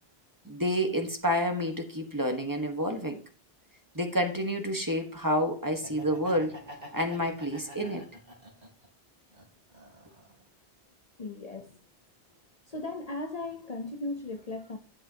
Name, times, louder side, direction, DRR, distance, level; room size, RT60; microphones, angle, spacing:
voice 1, 0.4-3.2 3.9-6.6 6.9-8.0, equal, 20° right, 1.4 m, -29 dB
Laughter, 5.8-8.9 9.3-10.4, equal, 45° right, 3.4 m, -46 dB
voice 2, 11.2-11.8 12.7-14.8, left 2 dB, 40° left, 0.9 m, -37 dB
11.5 x 7.9 x 2.9 m
omnidirectional pair, 1.0 m